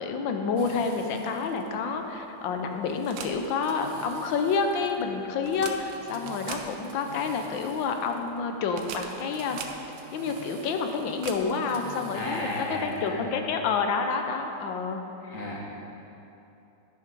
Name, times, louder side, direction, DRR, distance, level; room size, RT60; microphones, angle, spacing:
voice 1, 0.0-9.6 10.1-15.0, left 5 dB, 80° left, 5 dB, 1.5 m, -29 dB
sound 1, 0.6-13.3, right 5 dB, 75° right, 1.4 m, -44 dB
voice 2, 12.1-13.3 15.2-15.6, left 2 dB, 45° left, -4 dB, 1.9 m, -33 dB
10.5 x 7.0 x 5.3 m, 3.0 s
omnidirectional pair, 2.1 m